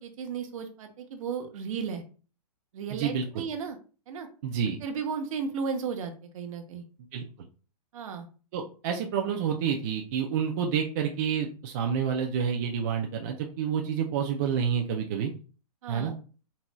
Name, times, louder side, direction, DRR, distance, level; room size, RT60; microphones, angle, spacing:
voice 1, 0.0-2.0 2.7-3.8 4.1-4.3 4.8-6.8 7.9-8.3 15.8-16.1, right 6 dB, 55° right, 5 dB, 0.9 m, -34 dB
voice 2, 2.9-3.2 4.4-4.8 7.1-7.2 8.5-15.3 15.9-16.1, right 7 dB, 25° right, 1 dB, 0.3 m, -28 dB
3.9 x 3.0 x 2.2 m, 0.37 s
hypercardioid pair, 160°, 21 cm